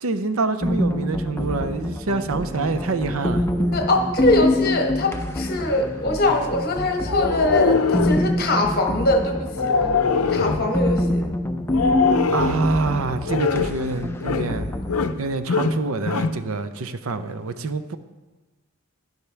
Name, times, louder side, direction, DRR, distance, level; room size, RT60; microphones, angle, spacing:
voice 1, 0.0-3.4 12.3-14.8 15.2-18.0, right 3 dB, 70° right, 11 dB, 0.6 m, -26 dB
sound 1, 0.6-15.1, left 1 dB, 10° left, 0.5 m, -26 dB
voice 2, 3.7-9.8 10.3-11.3, left 1 dB, 45° left, 3 dB, 1.2 m, -22 dB
sound 2, 7.1-8.3 9.5-10.7 11.7-12.7 13.3-13.8 14.2-14.6 14.8-15.2 15.5-16.4, left 5 dB, 75° left, 0.6 m, -22 dB
11.5 x 10.5 x 3.4 m, 1.2 s
head